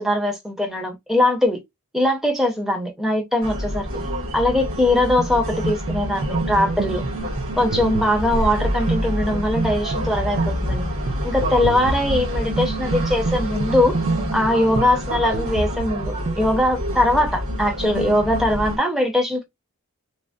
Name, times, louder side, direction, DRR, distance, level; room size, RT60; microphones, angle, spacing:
voice 1, 0.0-1.6 1.9-3.9 4.3-7.0 7.6-10.9 11.2-14.0 14.3-19.5, left 1 dB, ahead, 0.6 m, -21 dB
sound 1, 3.4-18.8, equal, 65° right, 1.6 m, -27 dB
sound 2, 5.2-16.4, right 3 dB, 45° right, 0.5 m, -28 dB
3.3 x 2.1 x 2.4 m
head